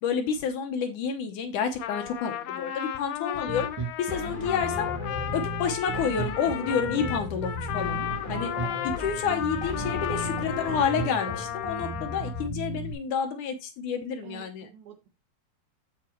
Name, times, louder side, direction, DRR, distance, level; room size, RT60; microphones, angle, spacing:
voice 1, 0.0-3.7 4.0-4.9 5.3-8.0 8.3-8.5 8.8-14.7, left 6 dB, 70° left, 6 dB, 2.2 m, -29 dB
Trumpet, 1.6-12.5, left 11 dB, 85° left, 1.5 m, -34 dB
Bass guitar, 3.3-12.9, right 1 dB, 40° right, 2.7 m, -35 dB
sound 1, 4.1-11.4, equal, 20° left, 0.8 m, -38 dB
voice 2, 14.2-15.1, right 7 dB, 80° right, 2 dB, 3.8 m, -48 dB
13.5 x 4.4 x 3.0 m, 0.25 s
omnidirectional pair, 4.2 m